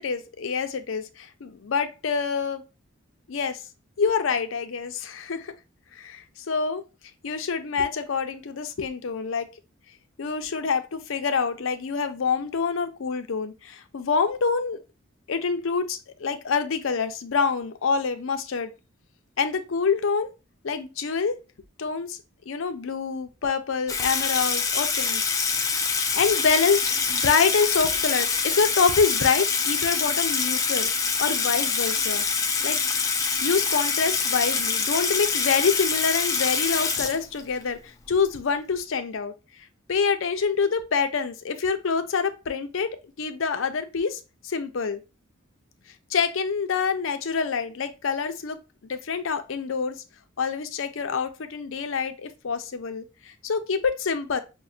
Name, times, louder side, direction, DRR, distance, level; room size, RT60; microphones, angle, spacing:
voice 1, 0.0-2.6 3.3-3.6 4.0-5.5 5.9-6.8 7.2-9.5 10.2-14.8 15.3-18.7 19.4-20.3 20.6-21.4 21.8-22.2 22.5-25.2 26.1-30.9 31.2-32.2 32.6-32.8 33.4-39.3 39.9-45.0 46.1-48.6 48.8-50.0 50.4-54.4, left 5 dB, 75° left, 0.5 m, -26 dB
Water tap faucet / Sink (filling or washing), 23.9-37.6, left 5 dB, 15° left, 0.3 m, -25 dB
6.0 x 2.1 x 2.4 m
head